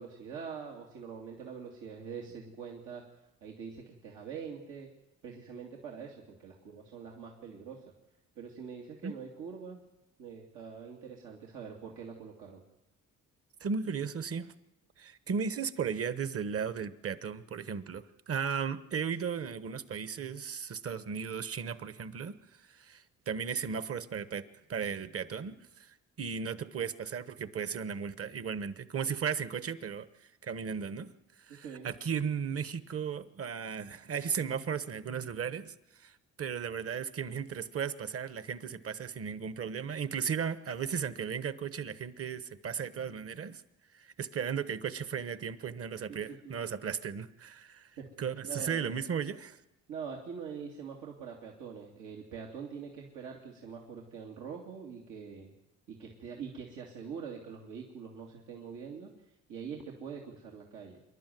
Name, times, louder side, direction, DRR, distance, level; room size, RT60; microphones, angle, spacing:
voice 1, 0.0-3.0 3.4-4.9 5.2-7.8 8.4-9.8 10.2-12.6 31.5-31.9 46.1-46.7 48.0-48.1 48.4-49.0 49.9-55.5 55.9-59.1 59.5-61.0, right 6 dB, 90° right, -2 dB, 2.6 m, -44 dB
voice 2, 13.6-14.5 15.0-22.3 22.6-24.4 24.7-30.1 30.4-31.1 31.4-43.6 43.9-47.9 48.2-49.6, right 6 dB, 50° right, 13 dB, 1.2 m, -36 dB
26.0 x 11.5 x 9.3 m, 0.93 s
cardioid pair, 90°, 30 cm